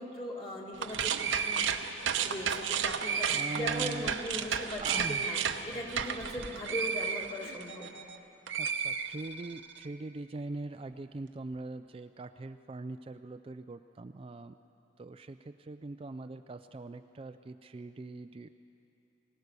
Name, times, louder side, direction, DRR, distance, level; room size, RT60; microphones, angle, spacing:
voice 1, 0.0-1.7 2.2-5.4 5.7-7.9, equal, 30° left, -1 dB, 2.5 m, -39 dB
sound 1, 0.7-8.2 8.5-9.6, right 7 dB, 85° right, 0.9 m, -32 dB
voice 2, 3.3-4.1 4.8-5.3 8.6-14.6 15.0-18.5, right 2 dB, 30° right, 9 dB, 0.4 m, -42 dB
24.0 x 17.0 x 6.8 m, 2.9 s
head